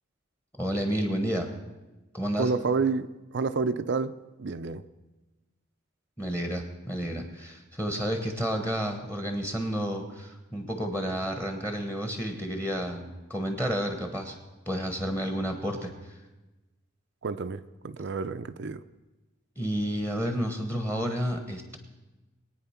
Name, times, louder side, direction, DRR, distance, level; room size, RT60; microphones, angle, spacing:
voice 1, 0.6-1.5 2.1-2.5 6.2-14.4 14.7-16.2 19.6-21.8, equal, 10° left, 1.2 m, -31 dB
voice 2, 2.3-4.8 17.2-18.8, right 4 dB, 55° right, 0.5 m, -29 dB
21.5 x 9.1 x 5.8 m
head